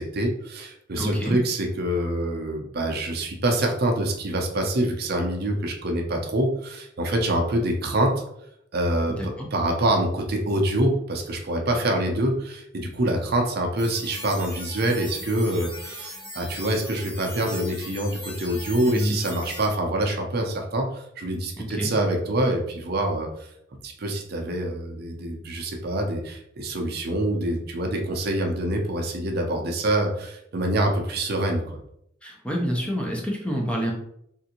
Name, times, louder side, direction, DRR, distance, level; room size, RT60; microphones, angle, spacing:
voice 1, 0.0-8.1 8.7-23.3 23.8-31.8, right 1 dB, 55° right, 2 dB, 0.5 m, -25 dB
voice 2, 1.0-1.4 9.2-9.5 18.9-19.2 21.6-21.9 32.2-33.9, equal, 5° left, -1 dB, 0.6 m, -28 dB
sound 1, 13.8-19.7, left 1 dB, 25° left, 1.3 m, -39 dB
3.6 x 2.5 x 2.8 m, 0.75 s
head